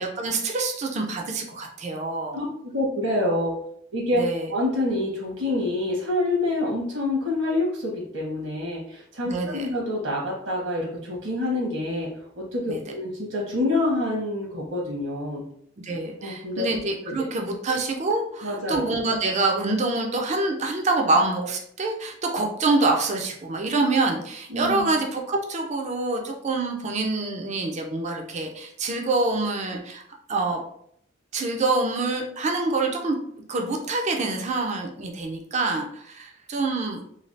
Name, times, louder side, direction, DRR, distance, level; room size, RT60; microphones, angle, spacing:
voice 1, 0.0-2.4 4.2-4.5 9.3-9.7 12.7-12.8 15.8-30.0 30.3-30.6 31.3-33.2 33.5-37.0, right 3 dB, 35° right, 1 dB, 0.4 m, -26 dB
voice 2, 2.7-3.6 3.9-4.2 4.5-15.4 16.2-16.7 17.0-17.3 18.4-18.9 24.5-24.9, left 1 dB, 85° right, -3 dB, 1.2 m, -27 dB
3.1 x 2.3 x 2.6 m, 0.67 s
head